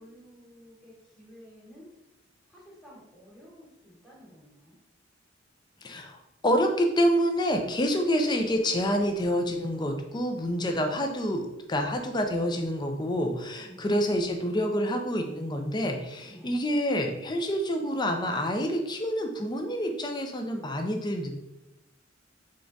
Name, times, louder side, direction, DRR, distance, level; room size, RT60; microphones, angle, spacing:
voice 1, 0.0-1.8 2.5-4.8 13.6-13.8 16.3-16.5, equal, ahead, -6 dB, 1.3 m, -52 dB
voice 2, 5.8-21.3, equal, 20° left, 4 dB, 0.5 m, -27 dB
3.7 x 3.4 x 3.9 m, 0.92 s
head